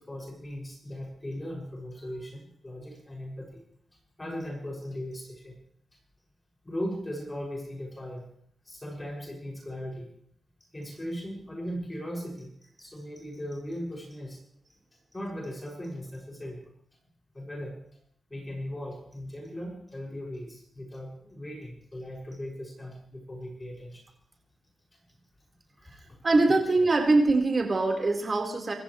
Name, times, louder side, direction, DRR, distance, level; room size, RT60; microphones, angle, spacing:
voice 1, 0.0-3.6 4.2-5.5 6.6-8.2 8.6-10.1 10.7-12.5 12.8-14.4 15.1-16.6 17.3-17.8 18.3-24.0 25.8-26.2, equal, 20° left, 0 dB, 6.3 m, -38 dB
voice 2, 26.2-28.7, right 2 dB, 40° right, 2 dB, 4.2 m, -23 dB
26.0 x 14.5 x 3.2 m, 0.64 s
cardioid pair, 65°, 0 cm